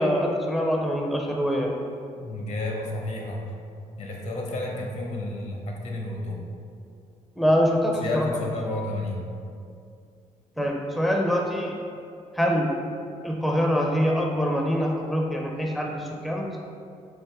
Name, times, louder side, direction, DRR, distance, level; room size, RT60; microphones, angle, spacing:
voice 1, 0.0-1.7 7.4-8.3 10.6-11.8 12.3-12.8 13.2-16.6, equal, ahead, 0 dB, 0.5 m, -24 dB
voice 2, 2.2-3.4 4.0-6.5 8.0-9.2, left 2 dB, 60° left, 0 dB, 0.8 m, -31 dB
4.6 x 2.5 x 3.5 m, 2.4 s
supercardioid pair, 70°, 13 cm